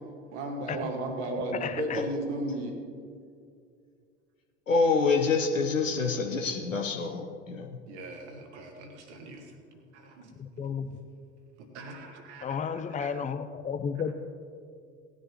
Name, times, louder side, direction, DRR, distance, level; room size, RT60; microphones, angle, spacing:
voice 1, 0.3-2.8 7.9-9.5 9.9-10.3 11.7-13.1, right 1 dB, 65° right, 3 dB, 1.9 m, -36 dB
voice 2, 1.6-2.0 10.4-10.9 12.4-14.1, left 6 dB, 20° left, 10 dB, 0.6 m, -32 dB
voice 3, 4.7-7.8, left 4 dB, 85° left, 2 dB, 0.7 m, -27 dB
18.0 x 10.0 x 3.1 m, 2.3 s
figure-of-eight pair, 65°, 38 cm